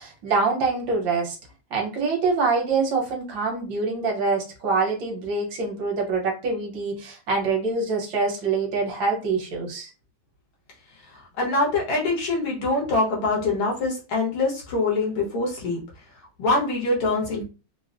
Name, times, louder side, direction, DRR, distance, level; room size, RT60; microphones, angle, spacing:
voice 1, 0.0-1.4 1.7-9.9, right 4 dB, 65° right, 0 dB, 1.6 m, -25 dB
voice 2, 11.0-15.8 16.4-17.4, left 3 dB, 80° left, -3 dB, 2.2 m, -24 dB
4.6 x 2.0 x 2.5 m, 0.33 s
omnidirectional pair, 2.3 m